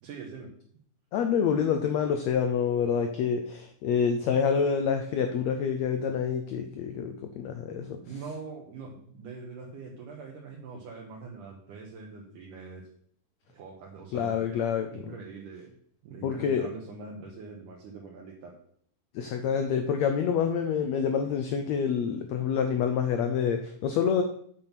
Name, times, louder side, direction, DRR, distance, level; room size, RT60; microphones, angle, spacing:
voice 1, 0.0-0.5 8.0-12.9 13.5-14.6 14.9-15.8 16.0-18.6, right 4 dB, 70° right, -1 dB, 2.7 m, -43 dB
voice 2, 1.1-8.0 14.1-15.0 16.2-16.7 19.1-24.2, left 7 dB, 90° left, 6 dB, 1.5 m, -27 dB
7.6 x 7.4 x 5.8 m, 0.63 s
omnidirectional pair, 4.1 m